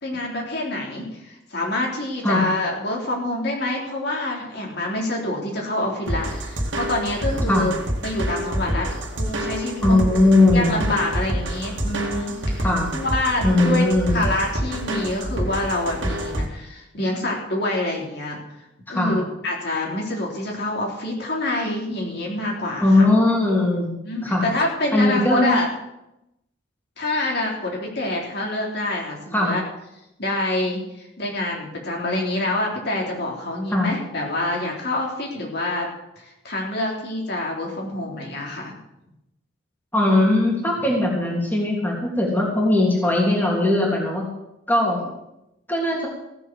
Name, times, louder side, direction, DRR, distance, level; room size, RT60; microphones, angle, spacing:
voice 1, 0.0-7.7 8.0-12.7 12.9-18.4 18.9-23.1 24.1-25.7 27.0-29.6 30.2-35.9 36.2-38.8, left 1 dB, 60° left, -1 dB, 3.6 m, -26 dB
sound 1, 6.1-16.5, right 1 dB, 80° right, 2.0 m, -27 dB
voice 2, 9.8-10.9 12.6-13.0 13.4-14.2 18.9-19.2 22.8-24.5 24.9-25.6 29.3-29.5 33.7-33.9 39.9-44.3 44.7-45.1 45.7-46.1, left 2 dB, 10° left, -2 dB, 3.0 m, -19 dB
16.0 x 7.7 x 7.7 m, 0.88 s
head